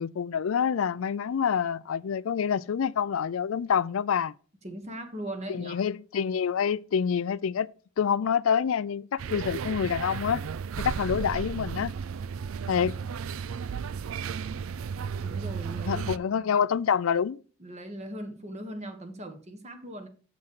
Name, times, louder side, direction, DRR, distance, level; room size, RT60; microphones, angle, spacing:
voice 1, 0.0-4.3 5.5-7.7 8.0-10.4 10.8-11.9 12.7-13.0 15.9-17.4, left 7 dB, 80° left, 0.4 m, -27 dB
voice 2, 4.6-5.8 15.1-16.6 17.6-20.1, right 1 dB, 35° right, 1.5 m, -39 dB
sound 1, 9.2-16.2, right 6 dB, 85° right, 0.4 m, -34 dB
7.6 x 7.2 x 4.7 m
head